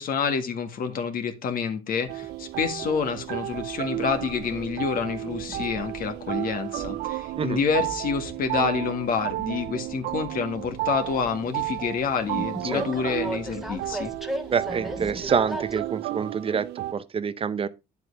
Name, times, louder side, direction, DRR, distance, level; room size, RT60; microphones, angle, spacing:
voice 1, 0.0-14.1, left 6 dB, 55° left, 1.8 m, -28 dB
Train, 2.1-15.9, right 1 dB, ahead, 1.5 m, -40 dB
sound 1, 2.1-16.9, right 16 dB, 80° right, 0.5 m, -33 dB
voice 2, 14.5-17.7, right 6 dB, 35° right, 0.6 m, -27 dB
9.8 x 7.6 x 3.3 m
cardioid pair, 110°, 17 cm